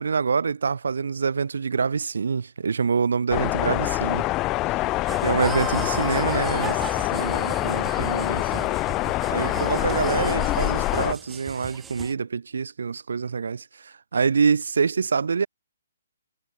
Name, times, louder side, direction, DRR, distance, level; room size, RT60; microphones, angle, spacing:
voice 1, 0.0-4.3 5.2-8.7 9.3-15.5, right 5 dB, 65° right, 2.8 m, -26 dB
sound 1, 3.3-11.1, left 19 dB, 25° left, 0.7 m, -25 dB
sound 2, 5.1-12.1, right 8 dB, 15° right, 3.8 m, -37 dB
figure-of-eight pair, 130°, 0 cm